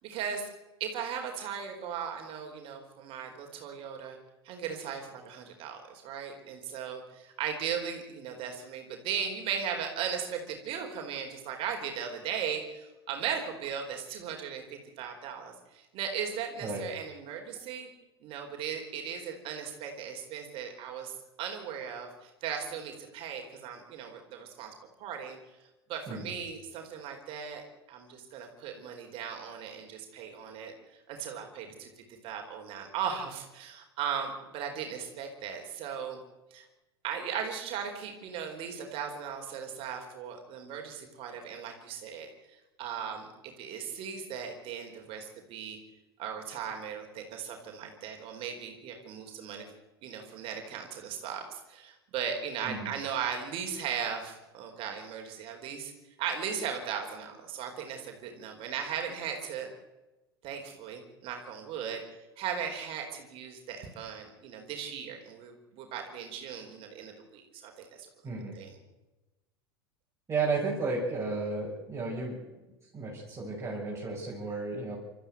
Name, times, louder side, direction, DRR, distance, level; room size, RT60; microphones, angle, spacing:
voice 1, 0.0-0.5 0.8-4.2 4.4-14.6 15.0-17.9 18.2-21.1 21.4-24.7 25.0-25.4 25.9-27.6 27.9-30.7 31.1-31.9 32.2-36.2 36.5-36.7 37.0-43.3 43.6-45.8 46.2-49.7 50.0-55.9 56.2-59.7 60.4-62.0 62.4-68.1 68.5-68.8, right 7 dB, 45° right, 3 dB, 4.4 m, -37 dB
voice 2, 68.2-68.6 70.3-72.4 72.6-75.0, right 3 dB, 20° right, -5 dB, 6.7 m, -33 dB
30.0 x 14.0 x 7.9 m, 1.1 s
figure-of-eight pair, 80°, 13 cm